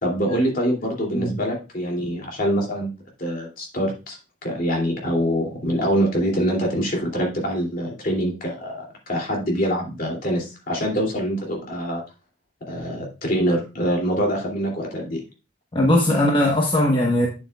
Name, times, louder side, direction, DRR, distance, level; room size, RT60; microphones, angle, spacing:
voice 1, 0.0-2.9 3.2-12.0 12.7-15.2, equal, 50° left, -1 dB, 2.7 m, -24 dB
voice 2, 15.7-17.3, left 1 dB, 25° left, -1 dB, 1.1 m, -19 dB
8.8 x 7.8 x 2.3 m, 0.31 s
head